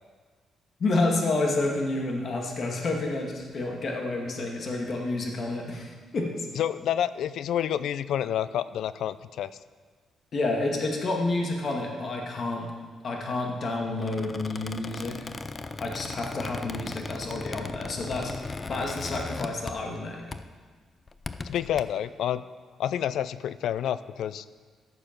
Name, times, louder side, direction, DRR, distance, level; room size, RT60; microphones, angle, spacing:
voice 1, 0.8-6.5 10.3-12.7 13.0-15.3 15.8-18.3 18.7-20.2, left 2 dB, 45° left, 1 dB, 2.0 m, -29 dB
voice 2, 6.6-9.6 21.4-22.4 22.8-24.4, left 10 dB, 75° left, 16 dB, 0.4 m, -29 dB
Squeak, 13.9-20.0 20.3-20.6 21.1-21.8, left 3 dB, 25° left, 0.5 m, -38 dB
14.0 x 6.9 x 6.0 m, 1.5 s
cardioid pair, 125°, 0 cm